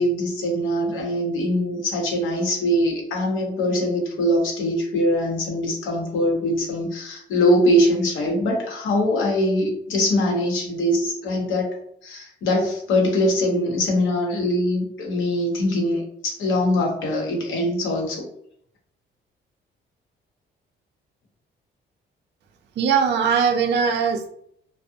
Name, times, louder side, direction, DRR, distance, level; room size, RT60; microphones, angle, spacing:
voice 1, 0.0-11.8 12.0-18.3, left 1 dB, 80° left, 0 dB, 0.8 m, -22 dB
voice 2, 22.8-24.3, right 6 dB, 60° right, 4 dB, 0.4 m, -20 dB
2.4 x 2.0 x 2.6 m, 0.68 s
cardioid pair, 90°, 20 cm